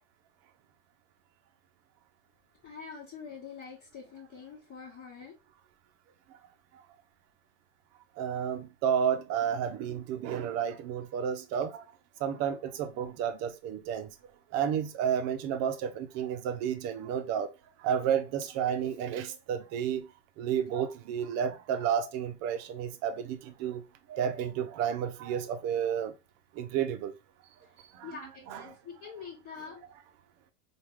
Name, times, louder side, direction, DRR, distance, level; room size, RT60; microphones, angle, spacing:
voice 1, 2.6-5.3 28.0-29.8, left 6 dB, 35° left, 1.2 m, -45 dB
voice 2, 8.2-11.8 12.2-14.1 14.5-17.5 17.8-20.1 20.4-23.8 24.1-26.1 26.5-27.1 27.9-28.2 28.5-28.7, right 8 dB, 45° right, 0.6 m, -31 dB
3.4 x 2.3 x 3.0 m
hypercardioid pair, 105°, 37 cm